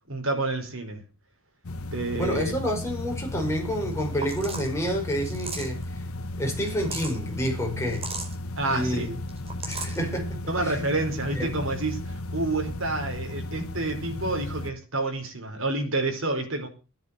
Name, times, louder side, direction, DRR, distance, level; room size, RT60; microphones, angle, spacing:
voice 1, 0.1-1.0 1.9-2.5 8.6-9.2 10.5-16.7, right 2 dB, 65° right, 4.7 m, -29 dB
sound 1, 1.6-14.7, left 1 dB, 80° left, 1.1 m, -35 dB
voice 2, 2.2-6.0 6.4-8.1 8.7-9.1 9.7-10.8 11.3-11.5, equal, 15° left, 5.2 m, -29 dB
sound 2, 4.2-4.7 5.2-5.8 6.6-7.2 7.9-8.3 9.3-10.0, right 3 dB, 30° right, 4.6 m, -35 dB
13.5 x 10.5 x 6.9 m
head